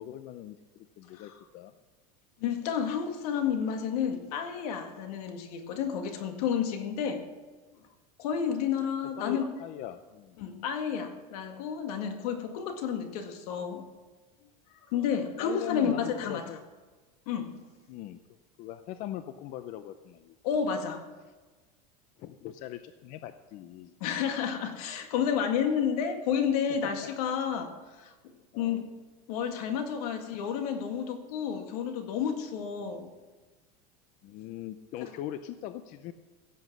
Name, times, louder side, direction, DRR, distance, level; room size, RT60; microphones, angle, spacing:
voice 1, 0.0-1.7 9.2-10.4 15.4-16.6 17.9-18.2 18.6-20.4 22.2-23.9 28.5-28.9 32.8-32.9 34.2-36.1, left 12 dB, 40° left, 11 dB, 0.6 m, -41 dB
voice 2, 2.4-7.2 8.2-9.5 10.4-13.8 14.9-16.4 17.3-17.6 20.4-21.0 24.0-27.7 28.0-28.1 28.5-28.9 29.3-33.1 35.0-35.1, left 7 dB, 75° left, 6 dB, 2.0 m, -31 dB
16.0 x 7.9 x 6.2 m, 1.3 s
supercardioid pair, 160°, 20 cm